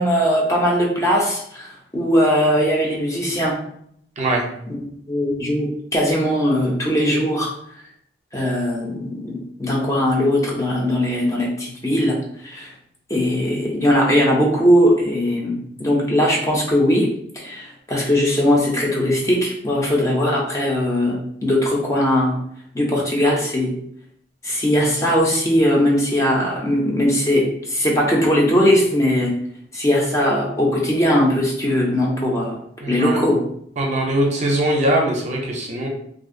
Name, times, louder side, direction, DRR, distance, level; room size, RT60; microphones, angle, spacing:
voice 1, 0.0-3.6 4.7-4.8 5.1-7.5 8.3-12.7 13.1-17.1 17.3-22.4 22.7-23.7 24.4-29.3 29.7-32.6 32.9-33.4, equal, 15° left, -2 dB, 0.4 m, -19 dB
voice 2, 32.8-33.3 33.8-35.9, right 1 dB, 40° right, 0 dB, 0.5 m, -21 dB
2.5 x 2.0 x 2.5 m, 0.68 s
head